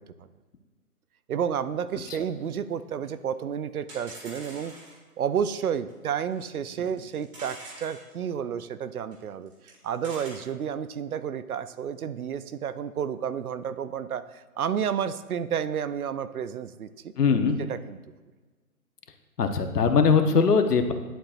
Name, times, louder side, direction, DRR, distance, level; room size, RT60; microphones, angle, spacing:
voice 1, 1.3-4.7 5.2-17.1 17.6-18.0, right 8 dB, 70° right, 14 dB, 0.6 m, -31 dB
sound 1, 1.9-2.0 2.2-2.3 2.5-2.6 3.0-3.1 3.3-3.4 3.9-5.0 5.9-6.0 6.3-6.4 6.9-8.0 9.1-9.2 9.5-10.3, right 1 dB, 35° right, 2.1 m, -45 dB
voice 2, 17.2-17.6 19.4-20.9, left 5 dB, 80° left, 7 dB, 0.9 m, -21 dB
11.0 x 4.3 x 2.5 m, 1.3 s
hypercardioid pair, 165°, 46 cm